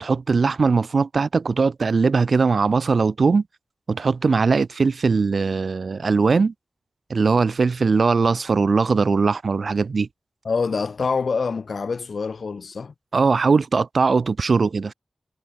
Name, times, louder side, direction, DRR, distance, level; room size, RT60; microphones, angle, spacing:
voice 1, 0.0-3.4 3.9-6.5 7.1-10.1 13.1-14.9, right 4 dB, 75° right, 1.0 m, -20 dB
voice 2, 10.4-12.9, left 5 dB, 80° left, 1.5 m, -25 dB
cardioid pair, 55°, 0 cm